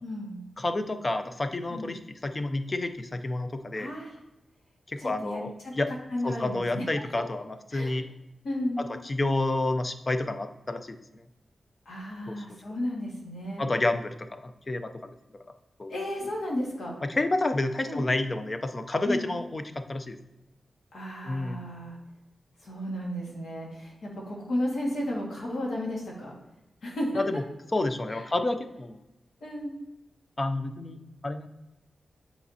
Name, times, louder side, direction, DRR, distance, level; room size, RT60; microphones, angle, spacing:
voice 1, 0.0-0.4 1.7-1.9 3.7-4.1 5.0-5.7 6.1-6.8 7.7-8.0 8.4-8.9 11.9-13.6 15.9-16.9 17.8-18.0 19.0-19.3 20.9-22.0 22.6-26.4 26.8-27.2 28.1-28.2 29.4-29.7, left 1 dB, 80° left, -3 dB, 1.8 m, -33 dB
voice 2, 0.6-3.9 4.9-5.9 6.2-8.1 8.8-11.2 12.3-12.4 13.6-15.1 15.8-15.9 17.0-20.2 21.2-21.6 27.2-27.4 27.7-29.0 30.4-31.0 31.2-31.5, left 2 dB, 30° left, 9 dB, 0.4 m, -29 dB
8.4 x 4.1 x 2.8 m, 0.96 s
wide cardioid pair, 125°, 0 cm